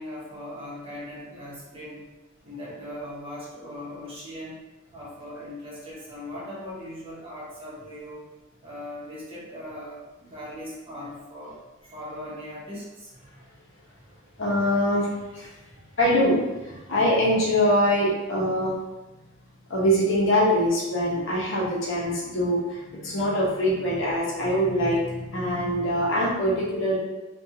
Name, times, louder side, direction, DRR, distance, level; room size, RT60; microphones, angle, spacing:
voice 1, 0.0-2.1 2.4-4.6 4.9-8.3 8.6-11.6 11.9-13.1, left 1 dB, 25° right, -8 dB, 0.8 m, -39 dB
voice 2, 14.4-15.5 16.0-18.8 19.7-27.0, equal, 65° left, -5 dB, 0.8 m, -23 dB
2.5 x 2.3 x 2.6 m, 1.1 s
head